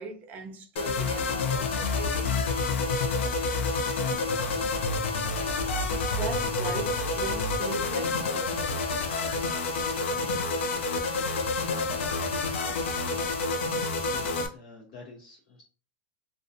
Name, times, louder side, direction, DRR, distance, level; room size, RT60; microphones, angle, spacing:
voice 1, 0.0-2.4 6.0-8.9, right 4 dB, 25° right, 0.4 m, -39 dB
sound 1, 0.8-14.5, left 3 dB, 90° left, 0.4 m, -28 dB
voice 2, 14.1-15.6, left 3 dB, 50° left, 0.6 m, -47 dB
2.5 x 2.2 x 2.6 m
supercardioid pair, 165°, 6 cm